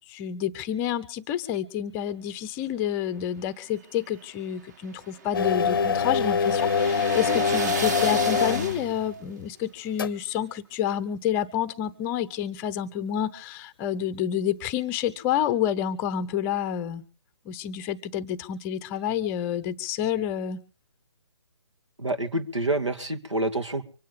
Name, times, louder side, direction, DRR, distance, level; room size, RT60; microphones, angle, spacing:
voice 1, 0.1-17.0 17.5-20.6, left 10 dB, 15° left, 15 dB, 0.7 m, -29 dB
sound 1, 3.7-9.2, right 5 dB, 40° right, 1.9 m, -35 dB
sound 2, 5.3-9.0 10.0-10.1, left 6 dB, 50° left, 0.6 m, -24 dB
voice 2, 22.0-23.9, right 2 dB, 85° right, 6 dB, 2.5 m, -27 dB
25.0 x 9.3 x 5.2 m, 0.37 s
figure-of-eight pair, 140°, 15 cm